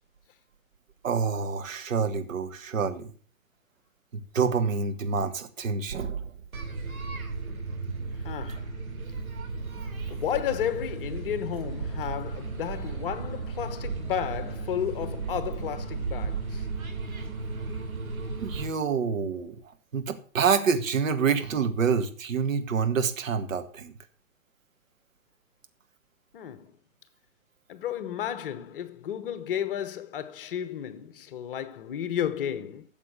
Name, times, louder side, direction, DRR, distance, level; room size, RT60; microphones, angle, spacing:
voice 1, 1.0-3.1 4.3-6.2 8.5-8.6 18.4-19.6 19.9-23.9, right 6 dB, 65° right, 1.8 m, -27 dB
sound 1, 6.5-18.7, right 4 dB, 85° right, 3.0 m, -34 dB
voice 2, 8.2-8.7 10.1-16.6 26.3-26.7 27.7-32.8, left 9 dB, 40° left, 1.1 m, -33 dB
12.5 x 7.4 x 6.7 m
hypercardioid pair, 140°, 42 cm